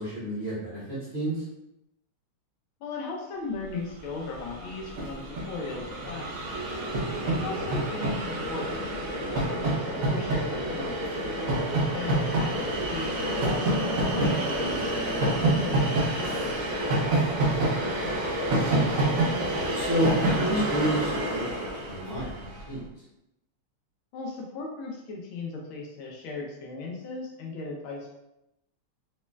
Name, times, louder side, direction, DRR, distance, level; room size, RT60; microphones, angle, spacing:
voice 1, 0.0-1.3 18.2-18.9 19.7-22.8, right 1 dB, 45° right, -9 dB, 0.9 m, -30 dB
voice 2, 2.8-6.5 7.2-11.4 11.9-14.9 15.2-16.6 24.1-28.1, left 3 dB, 75° left, -1 dB, 1.4 m, -37 dB
Train, 4.0-4.1 4.2-22.6, right 1 dB, 75° right, 0.7 m, -28 dB
Drum, 14.2-16.3, right 6 dB, 90° right, 1.7 m, -38 dB
4.2 x 3.1 x 2.2 m, 0.88 s
omnidirectional pair, 2.4 m